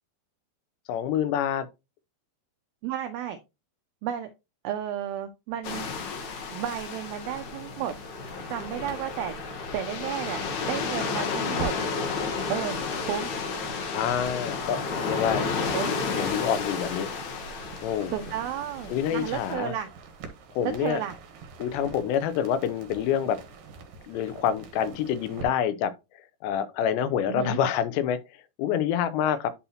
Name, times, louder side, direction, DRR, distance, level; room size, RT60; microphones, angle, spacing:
voice 1, 0.9-1.7 13.9-15.4 15.8-17.1 17.8-18.2 18.9-19.7 20.5-21.0 21.6-23.4 24.1-25.9 26.4-28.2 28.6-29.5, left 9 dB, 85° left, 3.0 m, -27 dB
voice 2, 2.8-3.4 4.0-4.3 4.6-5.9 6.5-7.9 8.5-9.4 9.7-11.7 12.5-13.3 15.7-15.9 18.1-19.9 20.8-21.2 27.3-27.6, right 10 dB, 85° right, 2.1 m, -32 dB
sound 1, 5.6-19.5, left 4 dB, 65° left, 1.8 m, -32 dB
sound 2, 7.9-25.4, right 4 dB, 65° right, 2.5 m, -45 dB
11.0 x 4.2 x 2.9 m
omnidirectional pair, 4.9 m